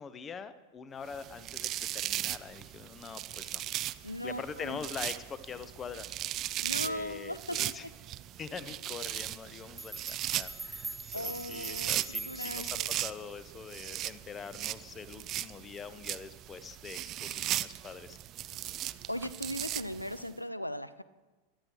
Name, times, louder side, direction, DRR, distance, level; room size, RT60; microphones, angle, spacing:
voice 1, 0.0-3.6 4.2-6.5 6.8-7.9 8.4-11.0 11.2-18.2, left 6 dB, 20° left, 13 dB, 0.8 m, -44 dB
sound 1, 1.1-20.3, right 13 dB, 35° right, 0.4 m, -38 dB
voice 2, 4.0-4.8 6.6-7.9 11.1-12.9 19.1-21.0, left 1 dB, 85° left, 15 dB, 0.5 m, -38 dB
sound 2, 9.4-9.5 9.8-12.9, right 3 dB, 5° right, 1.0 m, -41 dB
20.5 x 12.5 x 3.1 m, 1.2 s
figure-of-eight pair, 90°, 0 cm